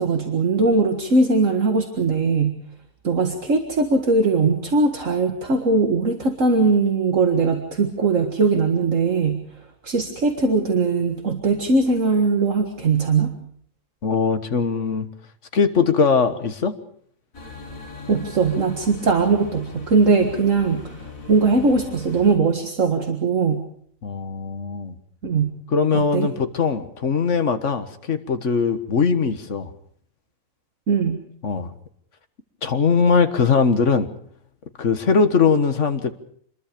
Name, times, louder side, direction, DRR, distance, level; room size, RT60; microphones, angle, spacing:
voice 1, 0.0-2.6 3.0-9.4 9.8-13.3 18.1-21.0 21.3-23.6 25.2-25.5 25.9-26.3 30.9-31.2, right 4 dB, 65° right, 4 dB, 2.1 m, -20 dB
voice 2, 14.0-15.1 15.5-16.7 24.0-25.0 25.7-29.7 31.4-31.7 32.6-34.1 34.8-36.1, left 5 dB, 60° left, 9 dB, 1.8 m, -20 dB
sound 1, 17.3-22.4, left 3 dB, 75° left, 2.8 m, -39 dB
27.0 x 21.5 x 5.2 m, 0.62 s
omnidirectional pair, 1.4 m